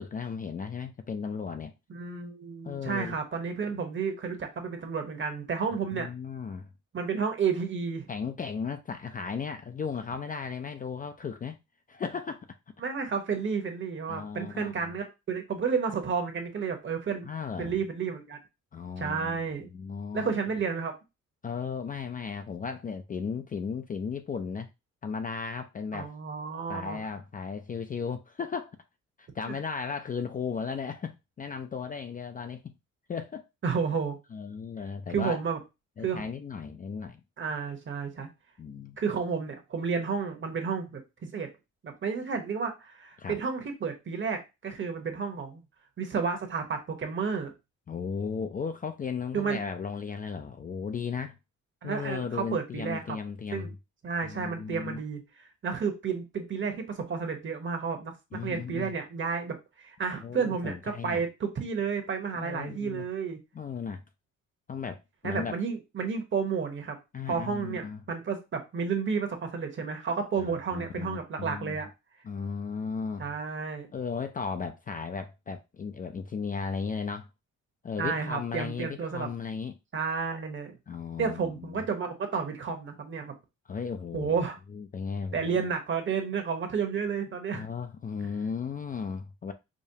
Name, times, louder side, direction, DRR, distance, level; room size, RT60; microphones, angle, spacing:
voice 1, 0.0-1.7 2.6-3.2 5.9-6.7 8.1-11.6 11.9-12.6 14.1-15.0 17.2-17.8 18.7-19.4 19.7-20.3 21.4-24.7 25.0-26.1 26.7-28.7 29.2-32.7 33.1-33.5 34.3-35.4 36.0-37.2 38.6-39.0 43.2-43.4 47.9-51.4 51.8-53.7 54.2-55.0 58.3-58.9 60.2-61.2 62.3-63.0 63.5-64.0 64.7-65.6 67.1-68.0 70.4-71.8 72.2-73.3 73.9-77.3 77.8-79.8 80.9-81.8 83.7-85.7 87.5-89.5, left 6 dB, 30° left, 0.4 m, -35 dB
voice 2, 1.9-6.1 6.9-8.1 12.8-17.3 17.6-18.4 19.0-19.7 20.1-20.9 25.9-27.0 33.6-34.2 35.1-35.6 36.0-36.3 37.4-38.3 39.0-41.5 41.8-45.6 46.0-47.5 49.3-49.6 51.8-53.2 53.5-53.7 54.0-63.4 65.2-67.0 67.3-71.9 73.2-73.9 78.0-79.3 79.9-80.7 81.2-83.3 84.1-84.6 85.3-87.6, right 5 dB, 40° right, 1.0 m, -31 dB
5.0 x 2.2 x 2.7 m
cardioid pair, 90°, 30 cm